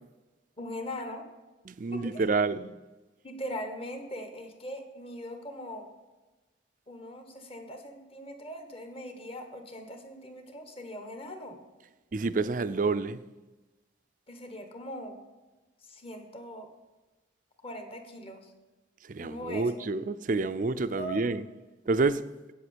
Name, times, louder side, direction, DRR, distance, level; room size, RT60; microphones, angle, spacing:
voice 1, 0.6-1.3 1.9-2.2 3.2-5.9 6.9-11.6 14.3-15.2 15.8-16.7 17.6-18.5 19.2-19.9 21.0-21.2, equal, 30° left, 1.5 m, -40 dB
voice 2, 1.7-2.7 12.1-13.2 19.1-21.4 21.9-22.2, right 3 dB, 45° right, 0.5 m, -28 dB
8.6 x 7.9 x 8.4 m
head